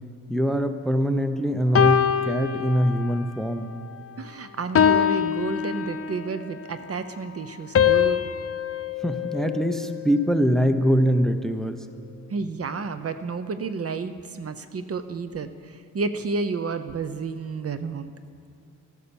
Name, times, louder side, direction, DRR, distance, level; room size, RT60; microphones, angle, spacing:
voice 1, 0.3-3.7 9.0-11.9, equal, ahead, 8 dB, 0.6 m, -23 dB
sound 1, 1.8-3.3 3.8-4.1 4.8-6.4 7.8-10.1, left 9 dB, 45° left, 0.5 m, -24 dB
voice 2, 4.2-8.2 12.3-18.1, right 4 dB, 45° right, 10 dB, 0.6 m, -31 dB
13.0 x 13.0 x 7.0 m, 2.3 s
wide cardioid pair, 150°, 32 cm